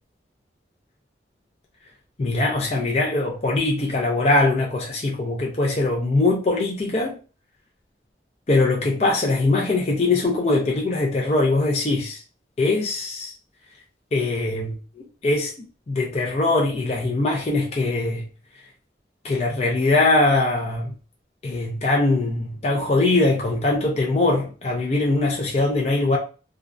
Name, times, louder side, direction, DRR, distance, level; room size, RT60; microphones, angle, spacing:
voice 1, 2.2-7.2 8.5-12.2 12.6-13.3 14.1-14.8 15.2-15.5 15.9-18.2 19.2-20.9 21.4-26.2, left 2 dB, 35° left, 0.4 m, -21 dB
2.4 x 2.1 x 2.4 m
head